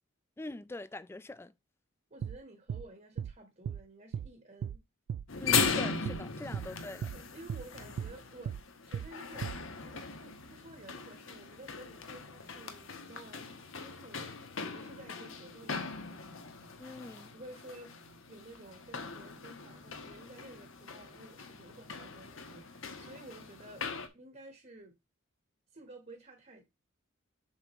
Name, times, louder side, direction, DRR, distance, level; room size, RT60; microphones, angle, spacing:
voice 1, 0.4-1.5 5.4-7.1 16.8-17.3, left 2 dB, 10° left, 0.3 m, -43 dB
voice 2, 2.1-4.8 6.4-6.5 7.1-16.2 17.1-17.9 18.3-23.8 24.1-24.9 25.7-26.6, right 2 dB, 35° right, 1.2 m, -53 dB
sound 1, 2.2-2.4 2.7-2.9 3.2-3.3 3.7-3.8 4.1-4.3 4.6-4.8 5.1-5.3 5.6-5.7 6.0-6.2 6.5-6.7 7.0-7.2 7.5-7.7 8.0-8.1 8.5-8.6 8.9-9.1 9.4-9.6, right 8 dB, 90° right, 0.3 m, -37 dB
sound 2, 5.3-24.1, left 5 dB, 65° left, 1.2 m, -39 dB
7.4 x 6.2 x 3.0 m
head